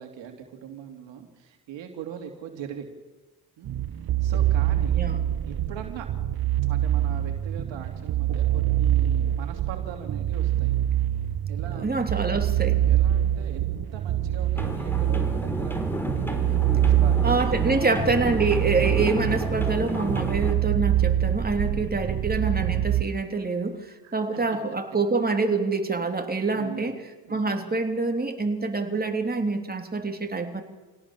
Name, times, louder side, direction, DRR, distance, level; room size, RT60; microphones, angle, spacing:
voice 1, 0.0-2.9 3.6-3.8 4.2-5.0 5.5-6.1 6.7-10.7 11.5-12.3 12.7-16.2 16.7-18.0 21.7-21.8 24.0-24.1 26.5-26.9 27.2-27.5, right 8 dB, 70° right, 5 dB, 2.9 m, -41 dB
sound 1, 3.7-23.0, right 12 dB, 50° right, 1.2 m, -25 dB
voice 2, 11.8-12.8 17.2-26.9 27.3-30.6, right 3 dB, 20° right, 4 dB, 3.4 m, -26 dB
sound 2, 14.6-20.5, equal, 5° left, 4.6 m, -31 dB
26.5 x 17.5 x 7.3 m, 1.2 s
hypercardioid pair, 55°, 46 cm